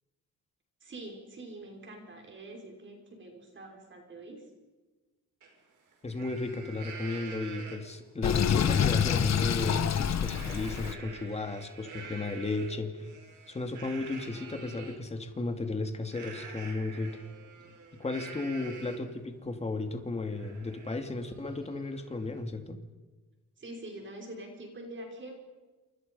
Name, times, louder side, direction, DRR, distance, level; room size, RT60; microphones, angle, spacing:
voice 1, 0.8-4.4 23.6-25.4, right 1 dB, 35° right, 2 dB, 5.8 m, -45 dB
Livestock farm animals working animals, 5.4-5.5 5.9-8.0 8.6-9.0 9.4-15.0 16.1-19.2 19.6-19.7 20.0-22.4, right 4 dB, 65° right, 5.8 m, -47 dB
voice 2, 6.0-13.0 13.5-17.2 18.0-22.8, left 3 dB, 20° left, 6 dB, 2.6 m, -34 dB
Sink (filling or washing), 8.2-11.0, left 8 dB, 55° left, 1.6 m, -27 dB
29.0 x 28.0 x 5.6 m, 1.3 s
wide cardioid pair, 175°, 32 cm